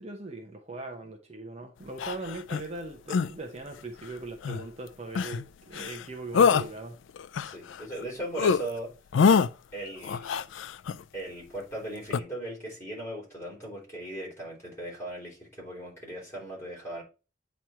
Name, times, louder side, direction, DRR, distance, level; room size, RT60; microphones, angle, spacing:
voice 1, 0.0-6.9, right 2 dB, 35° right, 0.7 m, -40 dB
sound 1, 2.0-2.6 3.1-3.3 4.4-4.6 5.1-5.4 5.7-6.0 6.3-6.7 7.2-8.0 8.3-8.6 9.1-9.5 10.0-11.0 12.1-12.2, left 6 dB, 70° left, 0.3 m, -24 dB
voice 2, 7.4-8.9 9.7-10.5 11.1-17.0, right 1 dB, 15° left, 3.3 m, -38 dB
8.6 x 3.1 x 4.4 m
head